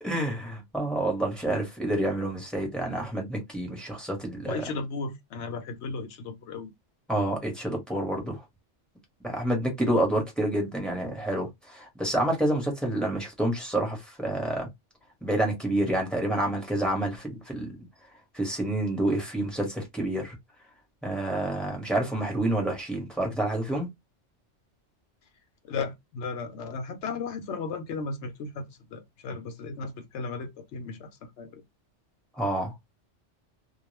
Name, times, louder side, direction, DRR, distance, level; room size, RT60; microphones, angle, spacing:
voice 1, 0.0-4.6 7.1-8.4 9.2-14.7 15.2-17.8 18.3-20.3 21.0-23.9 32.4-32.7, right 1 dB, ahead, 1.0 m, -28 dB
voice 2, 4.5-6.7 25.6-31.6, left 4 dB, 75° left, 0.9 m, -35 dB
2.3 x 2.3 x 3.1 m
omnidirectional pair, 1.2 m